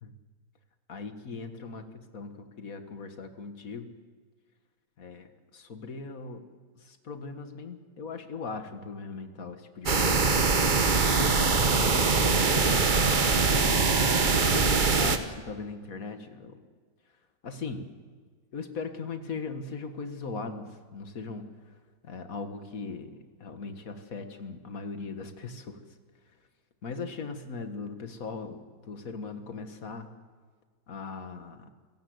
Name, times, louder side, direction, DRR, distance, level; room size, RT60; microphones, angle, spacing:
voice 1, 0.9-1.8 2.1-3.9 5.0-6.5 6.8-10.3 11.1-13.7 14.4-16.6 17.4-17.9 18.5-21.5 22.0-25.8 26.8-30.1 30.9-31.7, left 4 dB, 55° left, 7 dB, 2.0 m, -39 dB
sound 1, 9.9-15.2, right 4 dB, 30° right, 1.1 m, -23 dB
27.5 x 17.0 x 8.0 m, 1.5 s
omnidirectional pair, 1.8 m